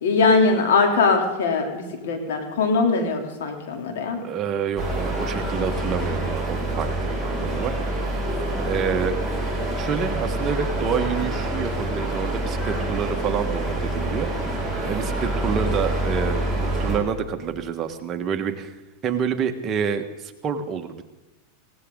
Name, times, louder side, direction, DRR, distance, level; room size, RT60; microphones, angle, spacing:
voice 1, 0.0-4.2, left 4 dB, 80° left, 3 dB, 3.3 m, -21 dB
voice 2, 4.2-8.1 8.6-9.2 9.8-18.7 19.0-21.0, right 7 dB, 30° right, 6 dB, 1.5 m, -28 dB
sound 1, 4.8-17.0, right 1 dB, 5° left, 4.8 m, -26 dB
19.5 x 17.0 x 3.9 m, 1.0 s
supercardioid pair, 130°, 0 cm